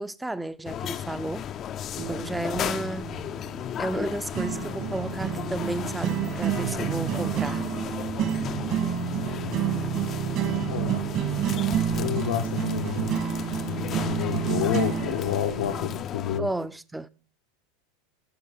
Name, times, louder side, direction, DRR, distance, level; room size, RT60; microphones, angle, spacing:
voice 1, 0.0-1.4 2.1-3.1 3.8-7.6 16.4-17.1, right 2 dB, 5° right, 0.6 m, -32 dB
sound 1, 0.6-16.4, left 9 dB, 40° left, 0.6 m, -35 dB
sound 2, 2.0-15.9, right 9 dB, 50° right, 1.7 m, -29 dB
voice 2, 9.0-9.9 10.4-11.0 11.9-13.2 13.6-16.5, left 9 dB, 85° left, 1.1 m, -30 dB
14.5 x 6.1 x 5.5 m
hypercardioid pair, 110°, 0 cm